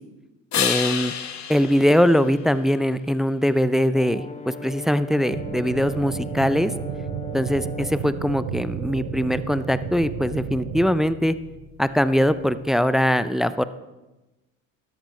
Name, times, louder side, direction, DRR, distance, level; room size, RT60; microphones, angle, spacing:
sound 1, 0.5-3.1 8.8-12.8, left 8 dB, 50° left, 1.1 m, -33 dB
voice 1, 0.6-1.1 1.5-6.7 7.3-11.3 11.8-13.6, equal, ahead, 14 dB, 0.4 m, -21 dB
Brass instrument, 3.9-8.1, left 4 dB, 20° left, 0.9 m, -38 dB
sound 2, 5.3-10.9, right 9 dB, 65° right, 0.9 m, -33 dB
13.0 x 10.5 x 3.2 m, 1.1 s
hypercardioid pair, 65°, 37 cm